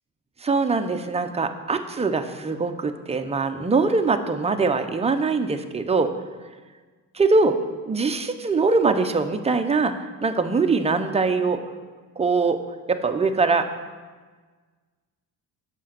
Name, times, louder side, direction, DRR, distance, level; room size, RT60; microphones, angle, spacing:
voice 1, 0.4-6.1 7.1-7.6 7.8-9.9 10.2-11.6 12.2-12.6 12.9-13.7, right 4 dB, 15° right, 6 dB, 0.6 m, -22 dB
7.4 x 6.0 x 7.4 m, 1.4 s
cardioid pair, 120°, 36 cm